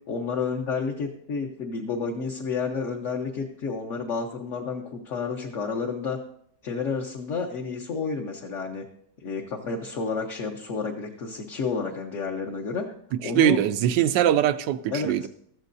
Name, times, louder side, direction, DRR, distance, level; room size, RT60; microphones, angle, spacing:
voice 1, 0.1-6.2 6.6-8.8 9.2-12.9 13.2-13.6 14.9-15.3, left 5 dB, 50° left, 1.2 m, -30 dB
voice 2, 13.4-15.3, right 11 dB, 80° right, 1.3 m, -22 dB
14.0 x 13.5 x 2.6 m
omnidirectional pair, 1.9 m